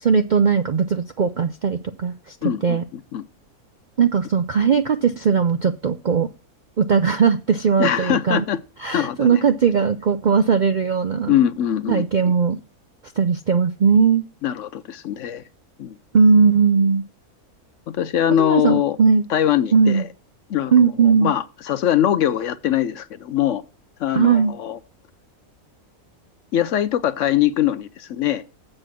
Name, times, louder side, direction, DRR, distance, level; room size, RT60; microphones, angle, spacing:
voice 1, 0.0-2.4 2.6-2.8 4.0-6.3 6.8-8.5 8.8-11.4 11.9-12.6 13.2-14.3 16.1-17.0 18.3-19.2 19.7-20.0 20.7-21.3 24.1-24.5, right 6 dB, 85° right, 0.4 m, -18 dB
voice 2, 2.4-3.2 7.8-8.6 8.9-9.4 11.3-12.0 12.5-12.6 14.4-15.4 15.8-16.0 18.0-19.0 19.3-20.1 20.5-23.6 24.0-24.8 26.5-28.4, left 11 dB, 65° left, 0.8 m, -22 dB
7.6 x 6.3 x 6.0 m
omnidirectional pair, 1.6 m